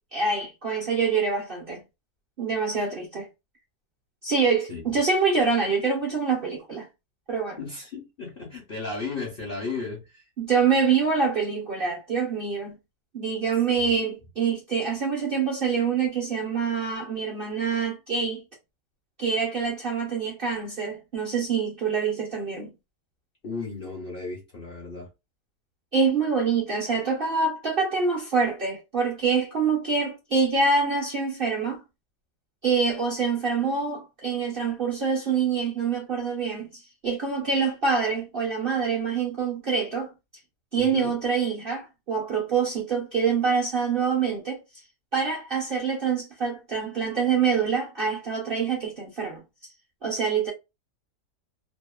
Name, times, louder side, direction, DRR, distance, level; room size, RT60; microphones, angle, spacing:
voice 1, 0.1-1.8 2.4-3.3 4.2-6.9 7.3-7.6 10.4-12.8 13.1-18.4 19.2-22.7 25.9-31.8 32.6-36.7 37.0-40.1 40.7-44.6 45.1-49.4 50.0-50.5, right 5 dB, 50° right, 0.7 m, -25 dB
voice 2, 7.6-10.2 13.7-13.9 23.4-25.1 40.8-41.1, left 4 dB, 50° left, 0.7 m, -35 dB
2.8 x 2.2 x 2.3 m
omnidirectional pair, 1.7 m